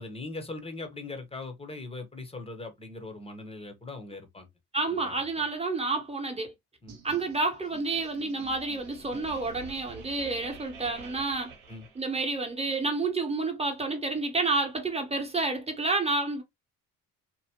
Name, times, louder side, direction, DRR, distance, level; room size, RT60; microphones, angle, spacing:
voice 1, 0.0-4.5 4.9-5.5 6.8-7.0 11.7-11.9, left 3 dB, 15° left, 1.1 m, -40 dB
voice 2, 4.7-6.5 7.0-11.5 11.9-16.4, right 3 dB, 15° right, 1.2 m, -29 dB
sound 1, 6.9-12.5, right 5 dB, 85° right, 0.8 m, -48 dB
2.8 x 2.2 x 2.9 m
hypercardioid pair, 50°, 43 cm